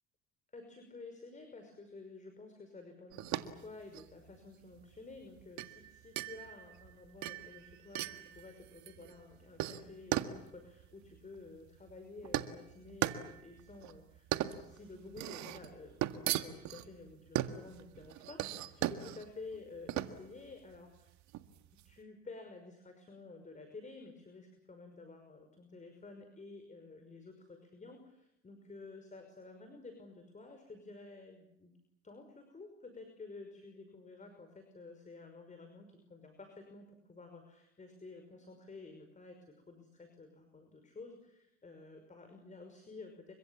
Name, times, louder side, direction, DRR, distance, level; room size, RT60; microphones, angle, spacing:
voice 1, 0.5-21.2 21.8-31.7 32.0-43.3, left 3 dB, 25° left, 6 dB, 5.8 m, -52 dB
sound 1, 3.1-21.9, right 13 dB, 60° right, 1.8 m, -39 dB
30.0 x 25.0 x 7.3 m, 0.81 s
hypercardioid pair, 80°, 32 cm